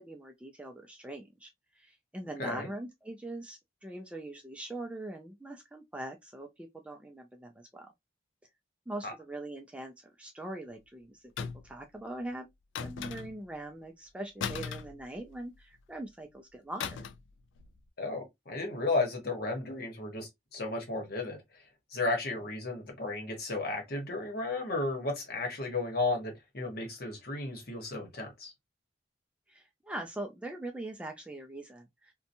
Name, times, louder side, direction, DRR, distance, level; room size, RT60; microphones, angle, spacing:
voice 1, 0.0-7.9 8.9-11.2 11.6-12.5 12.8-17.0 29.5-32.1, right 1 dB, 5° right, 0.3 m, -42 dB
voice 2, 2.4-2.7 9.0-9.1 18.0-21.6 21.9-28.5, left 2 dB, 55° left, 1.1 m, -34 dB
sound 1, 11.4-11.8 12.7-13.5 14.4-15.6 16.8-17.3 17.6-17.8, left 6 dB, 80° left, 0.3 m, -38 dB
2.8 x 2.2 x 2.6 m
head